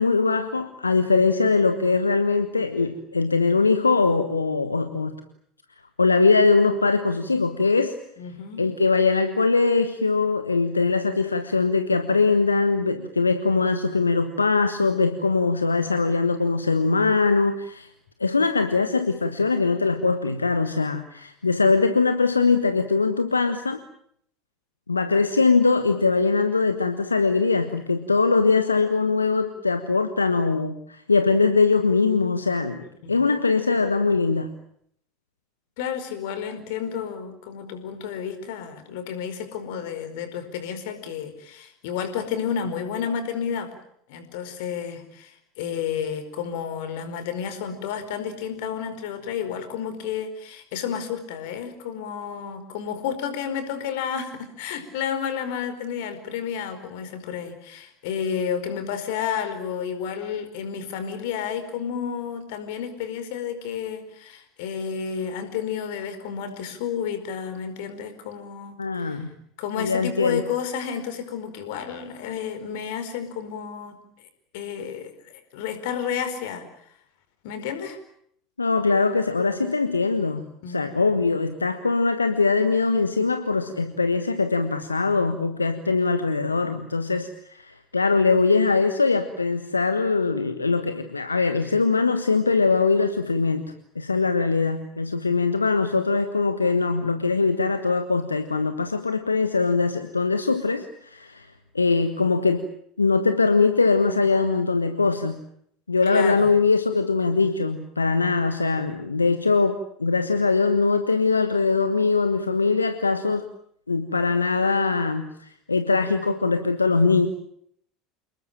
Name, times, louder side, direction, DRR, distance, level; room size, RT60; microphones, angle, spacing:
voice 1, 0.0-5.1 6.0-8.0 8.6-17.9 18.2-23.8 24.9-34.5 68.8-69.3 69.7-70.4 78.6-101.5 101.7-102.6 103.0-105.4 105.9-113.4 113.9-117.3, left 4 dB, 85° left, 9 dB, 1.4 m, -22 dB
voice 2, 8.2-8.6 32.8-33.2 35.8-43.7 44.1-69.2 69.6-74.0 74.5-76.7 77.4-78.0 80.4-80.8 106.1-106.5, left 7 dB, 60° left, 10 dB, 4.9 m, -31 dB
28.5 x 20.5 x 9.0 m, 0.69 s
figure-of-eight pair, 75°, 0 cm